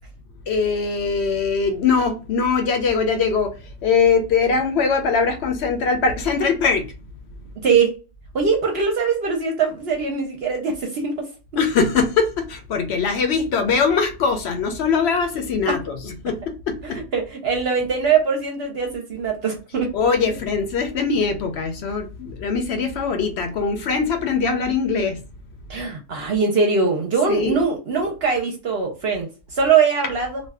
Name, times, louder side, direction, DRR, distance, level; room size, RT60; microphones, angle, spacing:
voice 1, 0.5-3.5 3.8-6.9 11.6-17.0 19.9-25.2 27.3-27.6, left 5 dB, 65° left, 0.8 m, -21 dB
voice 2, 7.6-7.9 8.3-11.2 15.7-15.8 16.8-19.9 25.7-30.4, right 5 dB, 60° right, 0.8 m, -22 dB
2.6 x 2.2 x 3.4 m
omnidirectional pair, 1.3 m